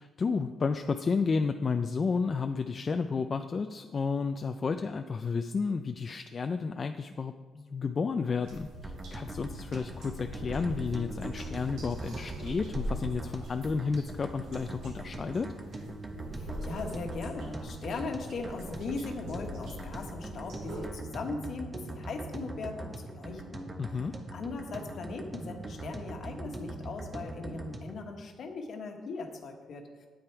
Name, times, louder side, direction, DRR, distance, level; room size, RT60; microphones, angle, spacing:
voice 1, 0.0-15.5 23.8-24.1, left 5 dB, 40° left, 7 dB, 0.4 m, -32 dB
sound 1, 8.4-20.8, equal, 90° right, 3.0 m, -42 dB
sound 2, 8.8-28.0, right 2 dB, 25° right, 1.1 m, -42 dB
voice 2, 16.3-23.7 24.3-29.9, left 3 dB, 60° left, 3 dB, 1.4 m, -39 dB
8.8 x 8.6 x 4.6 m, 1.4 s
cardioid pair, 90°, 0 cm